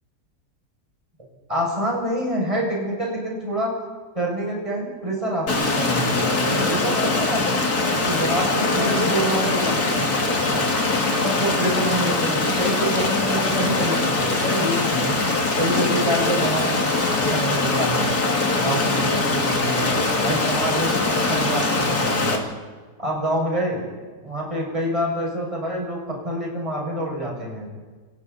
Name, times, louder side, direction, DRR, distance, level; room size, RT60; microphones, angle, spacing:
voice 1, 1.5-3.7 4.1-7.5 8.0-10.1 11.2-15.2 15.6-16.8 17.2-18.1 18.5-19.9 20.2-22.4 23.0-23.8 24.2-27.7, right 1 dB, 15° right, -3 dB, 6.8 m, -26 dB
Stream, 5.5-22.4, left 3 dB, 60° left, 2.9 m, -22 dB
28.0 x 28.0 x 4.2 m, 1.4 s
omnidirectional pair, 1.9 m